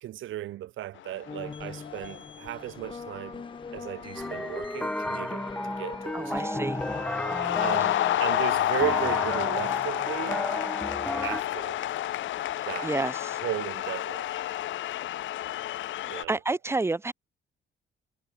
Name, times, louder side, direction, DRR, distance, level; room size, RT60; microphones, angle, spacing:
voice 1, 0.0-3.4 3.7-5.5 5.8-6.6 7.6-10.5 11.2-11.8 12.7-12.9 13.4-14.2 16.1-16.4, right 13 dB, 80° right, 2.8 m, -35 dB
sound 1, 1.0-1.5 1.7-2.3 3.1-3.4 3.8-6.0 6.3-16.2, left 13 dB, 75° left, 0.9 m, -30 dB
sound 2, 1.3-7.0, left 5 dB, 25° left, 0.8 m, -42 dB
sound 3, 4.2-11.4, left 1 dB, 5° left, 1.4 m, -33 dB
voice 2, 6.1-6.8 7.8-8.0 12.5-13.4 16.3-17.1, right 3 dB, 15° right, 0.6 m, -30 dB
cardioid pair, 90°, 20 cm